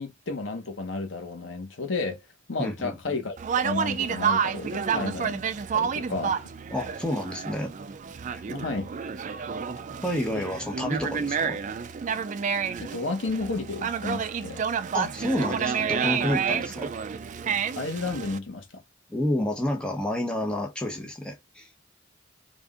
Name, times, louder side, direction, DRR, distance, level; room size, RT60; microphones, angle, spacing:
voice 1, 0.0-2.2 2.5-5.4 5.7-6.5 8.5-8.9 10.3-10.4 12.5-14.7 17.8-18.8, left 3 dB, 80° left, 1.2 m, -32 dB
voice 2, 2.6-3.2 6.7-7.7 8.3-8.4 10.0-11.6 14.9-16.9 19.1-21.7, left 1 dB, 5° left, 1.0 m, -29 dB
Conversation, 3.4-18.4, right 7 dB, 40° right, 0.4 m, -29 dB
3.7 x 2.5 x 3.6 m
head